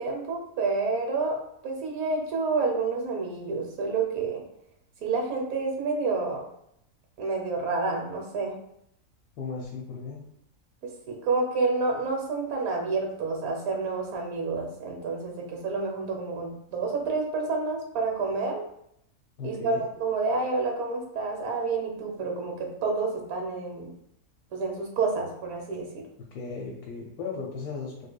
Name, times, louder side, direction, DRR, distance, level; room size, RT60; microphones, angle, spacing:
voice 1, 0.0-1.4 1.6-4.4 5.0-6.4 7.2-8.5 10.8-18.6 19.4-23.9 24.5-26.0, right 3 dB, 75° right, 1 dB, 1.2 m, -29 dB
voice 2, 9.4-10.2 19.4-19.8 26.3-28.1, left 4 dB, 90° left, -2 dB, 1.2 m, -36 dB
3.6 x 3.4 x 2.2 m, 0.75 s
omnidirectional pair, 1.6 m